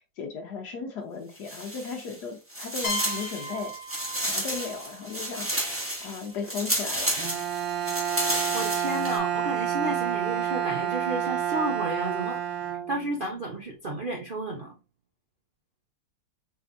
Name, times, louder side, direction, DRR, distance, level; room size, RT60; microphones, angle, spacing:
voice 1, 0.2-3.7 4.2-5.5 6.0-7.2, left 5 dB, 65° left, 1.3 m, -36 dB
sound 1, 1.4-2.2 2.5-9.2, equal, 10° right, 1.1 m, -31 dB
sound 2, 2.8-6.5, equal, 45° left, 0.8 m, -38 dB
Bowed string instrument, 7.2-13.3, right 10 dB, 90° right, 1.4 m, -29 dB
voice 2, 8.5-12.4 12.9-14.7, right 1 dB, 60° right, 0.5 m, -32 dB
4.2 x 3.6 x 2.6 m
omnidirectional pair, 2.0 m